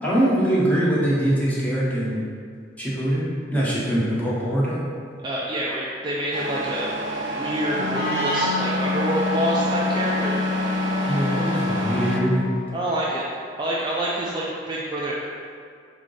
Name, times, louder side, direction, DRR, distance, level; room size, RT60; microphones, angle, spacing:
voice 1, 0.0-2.2 2.8-4.8 11.1-12.4, right 1 dB, 10° left, -8 dB, 0.9 m, -23 dB
voice 2, 5.2-6.9 7.3-10.4 12.7-13.2 13.6-15.1, equal, 25° right, -5 dB, 0.4 m, -27 dB
Truck, 6.3-12.2, right 2 dB, 80° right, 0.5 m, -29 dB
Wind instrument woodwind instrument, 7.7-12.6, left 3 dB, 55° left, 0.8 m, -26 dB
3.7 x 3.5 x 3.8 m, 2.2 s
head